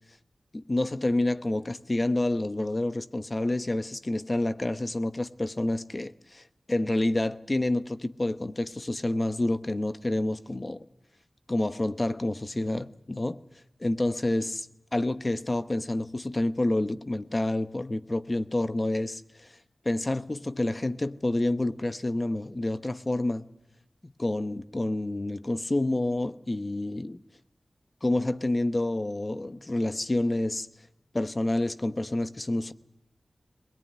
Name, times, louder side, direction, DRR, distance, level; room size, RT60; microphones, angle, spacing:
voice 1, 0.5-10.9 11.5-13.4 13.8-14.7 14.9-19.5 19.8-23.5 24.0-27.2 28.0-30.7 31.1-32.7, left 1 dB, 35° left, 1.0 m, -28 dB
21.0 x 21.0 x 9.6 m
wide cardioid pair, 50°, 0 cm